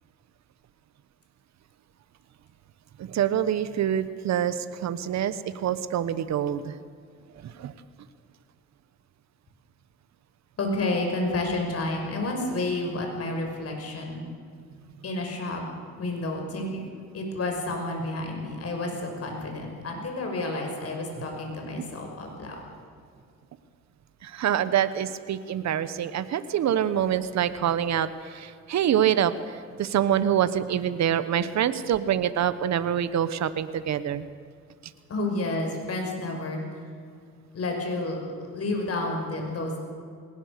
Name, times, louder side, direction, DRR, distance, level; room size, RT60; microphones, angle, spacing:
voice 1, 3.0-6.7 7.4-7.7 21.7-21.8 24.2-34.3, right 10 dB, 65° right, 13 dB, 1.2 m, -26 dB
voice 2, 10.6-14.2 15.0-15.6 16.0-16.8 17.1-22.6 35.1-36.6 37.5-38.2 38.5-39.8, left 2 dB, 50° left, 2 dB, 5.9 m, -30 dB
21.0 x 19.0 x 6.8 m, 2.2 s
cardioid pair, 90°, 30 cm